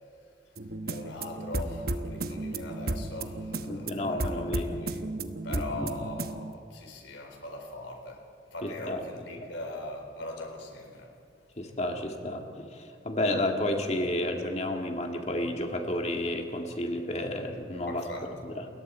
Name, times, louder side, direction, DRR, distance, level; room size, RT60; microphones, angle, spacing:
sound 1, 0.6-6.5, right 2 dB, 55° right, 1.0 m, -34 dB
voice 1, 0.9-5.0 5.4-11.1 17.9-18.3, left 2 dB, 85° left, 3 dB, 4.0 m, -41 dB
voice 2, 3.7-4.8 5.5-6.0 8.6-9.0 11.6-18.0 18.4-18.7, left 1 dB, 35° left, 3 dB, 2.0 m, -31 dB
28.5 x 21.0 x 4.5 m, 2.4 s
head